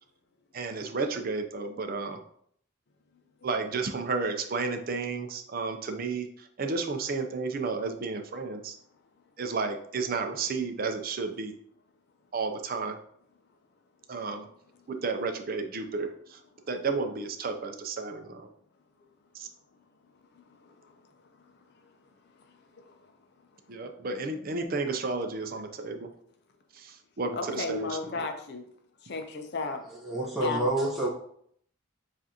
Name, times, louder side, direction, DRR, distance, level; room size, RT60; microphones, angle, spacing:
voice 1, 0.5-2.2 3.4-8.7 9.4-11.5 12.3-13.0 14.1-14.5 14.9-16.4 16.7-18.5 19.3-19.5 23.7-26.1 26.7-28.2, right 4 dB, 45° right, 6 dB, 0.5 m, -32 dB
voice 2, 20.3-21.9 22.7-23.1 27.3-28.6 29.0-29.8 30.3-30.7, left 3 dB, 55° left, 5 dB, 0.5 m, -36 dB
voice 3, 30.0-31.1, right 1 dB, ahead, -6 dB, 0.9 m, -27 dB
7.2 x 2.5 x 2.8 m, 0.66 s
head